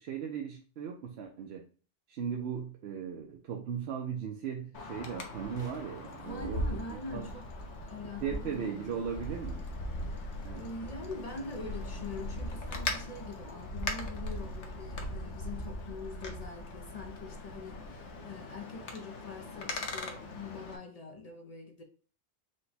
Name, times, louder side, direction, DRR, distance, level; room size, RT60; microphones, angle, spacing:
voice 1, 0.0-1.6 2.1-7.3 8.2-9.6 10.4-10.7, right 7 dB, 65° right, 0.8 m, -37 dB
Wind, 4.7-20.8, left 1 dB, 85° left, 1.2 m, -39 dB
sound 1, 5.6-7.3 10.2-10.3, left 1 dB, 65° left, 1.4 m, -59 dB
voice 2, 6.2-7.5 7.8-9.0 10.5-21.8, left 3 dB, 45° left, 0.6 m, -44 dB
5.0 x 2.2 x 4.0 m
omnidirectional pair, 1.2 m